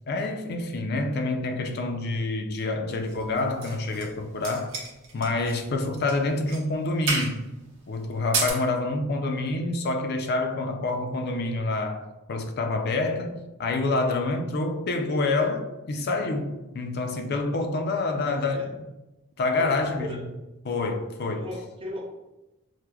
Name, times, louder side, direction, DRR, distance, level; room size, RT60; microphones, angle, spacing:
voice 1, 0.1-4.7 5.1-7.4 7.9-18.7 19.4-20.2 20.7-21.5, left 2 dB, 45° left, 0.3 m, -27 dB
sound 1, 3.1-4.1 4.4-5.6 6.0-6.2 6.5-6.6 7.1-7.4 8.2-8.5, right 3 dB, 60° right, 0.8 m, -30 dB
voice 2, 18.2-18.7 19.6-20.3 21.3-22.1, left 1 dB, 25° right, 0.5 m, -37 dB
4.6 x 2.0 x 2.2 m
head